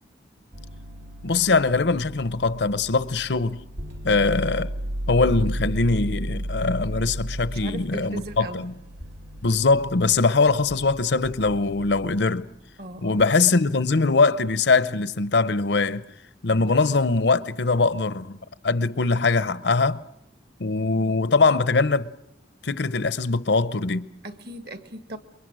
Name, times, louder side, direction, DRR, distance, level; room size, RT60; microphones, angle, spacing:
sound 1, 0.5-12.3 13.2-13.5, equal, 75° right, 2.3 m, -34 dB
voice 1, 1.2-3.6 4.0-4.7 5.1-8.7 9.4-12.5 13.0-16.0 16.4-18.4 18.6-20.0 20.6-22.1 22.6-24.1, left 3 dB, 70° left, 0.8 m, -22 dB
voice 2, 4.1-4.5 7.5-8.6 12.8-13.2 24.2-25.2, right 1 dB, 55° right, 1.8 m, -38 dB
28.5 x 23.0 x 6.3 m
head